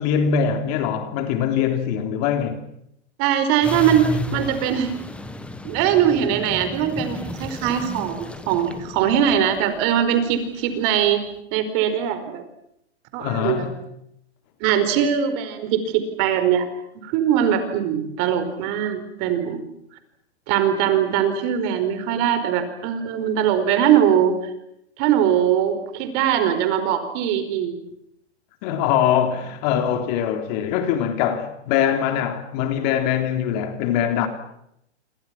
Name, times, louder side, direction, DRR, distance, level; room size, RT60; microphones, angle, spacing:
voice 1, 0.0-2.6 13.2-13.8 28.6-34.3, left 8 dB, 35° left, 3.4 m, -22 dB
voice 2, 3.2-4.9 5.6-11.2 11.5-12.4 13.1-13.7 14.6-16.7 17.0-19.6 20.5-24.4 25.0-27.7, right 9 dB, 35° right, 4.7 m, -21 dB
sound 1, 3.6-11.0, equal, 5° left, 1.5 m, -33 dB
28.0 x 28.0 x 6.0 m
hypercardioid pair, 155°, 35 cm